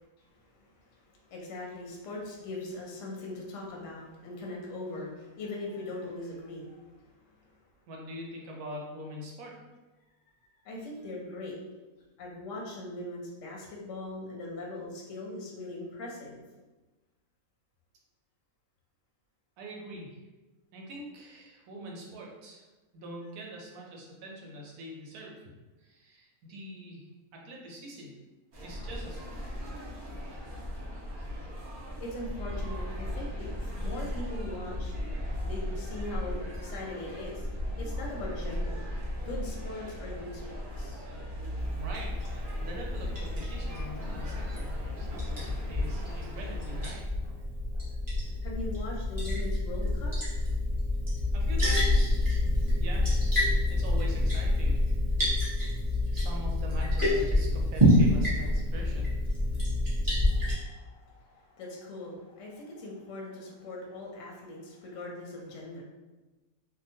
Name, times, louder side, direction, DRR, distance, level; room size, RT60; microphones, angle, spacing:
voice 1, 0.3-7.5 10.6-11.6 12.2-16.4 32.0-35.0 35.4-37.5 37.8-41.0 48.4-50.1 60.3-65.8, left 2 dB, 70° left, -2 dB, 0.8 m, -41 dB
voice 2, 7.9-9.5 19.6-20.2 20.7-22.7 22.9-25.4 25.8-28.1 28.6-29.4 41.8-47.1 51.3-52.3 52.8-53.1 53.7-54.9 56.1-59.1, equal, 90° right, -1 dB, 1.1 m, -43 dB
sound 1, 28.5-46.9, left 1 dB, 60° right, 0.5 m, -38 dB
sound 2, 41.0-42.4 42.9-49.9, equal, 90° left, 1.1 m, -43 dB
Liquid, 41.6-60.5, left 1 dB, 20° right, 0.7 m, -28 dB
2.8 x 2.1 x 2.6 m, 1.2 s
omnidirectional pair, 1.6 m